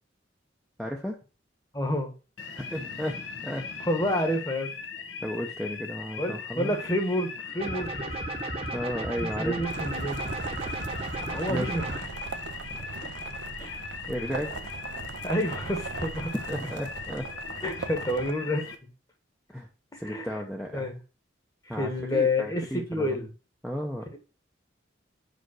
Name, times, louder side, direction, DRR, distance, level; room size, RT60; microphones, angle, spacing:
voice 1, 0.8-1.2 2.6-3.6 5.2-6.8 8.7-9.7 11.5-11.7 14.1-14.7 16.3-17.3 19.5-19.7 20.0-20.9 21.7-23.2 23.6-24.1, equal, ahead, 0 dB, 0.6 m, -34 dB
voice 2, 1.7-2.1 3.9-4.7 6.2-8.1 9.2-10.2 11.2-12.0 13.6-13.8 15.2-16.3 17.6-18.7 19.9-20.3 20.7-21.0 21.7-22.6 22.9-23.3, left 1 dB, 20° left, 6 dB, 1.2 m, -29 dB
sound 1, 2.4-18.8, left 5 dB, 85° left, 1.3 m, -39 dB
sound 2, 7.6-12.0, right 2 dB, 30° right, 0.9 m, -35 dB
sound 3, 9.7-18.3, right 5 dB, 75° right, 0.5 m, -39 dB
5.2 x 5.1 x 6.2 m, 0.34 s
head